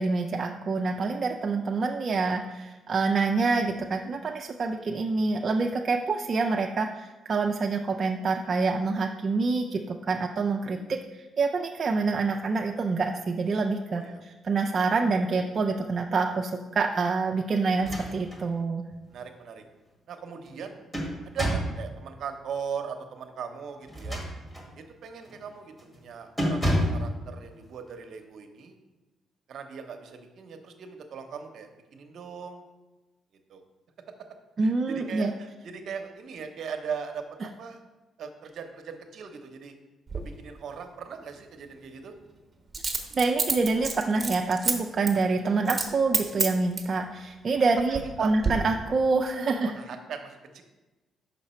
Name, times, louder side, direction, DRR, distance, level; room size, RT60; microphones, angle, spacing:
voice 1, 0.0-18.8 34.6-35.3 43.1-49.7, right 4 dB, 45° right, 2 dB, 0.4 m, -26 dB
voice 2, 13.9-14.2 19.1-19.6 20.1-20.7 21.2-24.2 24.8-28.8 29.5-32.6 33.5-33.6 34.6-37.2 37.6-37.8 38.2-39.8 40.1-42.1 47.9-48.3 49.6-50.6, right 6 dB, 65° right, 6 dB, 0.8 m, -39 dB
sound 1, 17.7-18.5 18.9-19.0 20.5-21.8 23.8-24.7 25.2-25.5 25.8-26.0 26.4-27.1, equal, 10° left, 1.7 m, -29 dB
Coin (dropping), 40.1-40.2 42.7-44.7 45.1-45.2 45.7-45.9 46.1-46.9 47.6-48.1 48.4-48.5, right 4 dB, 25° right, 1.0 m, -28 dB
5.9 x 5.7 x 4.3 m, 1.1 s
cardioid pair, 90°, 0 cm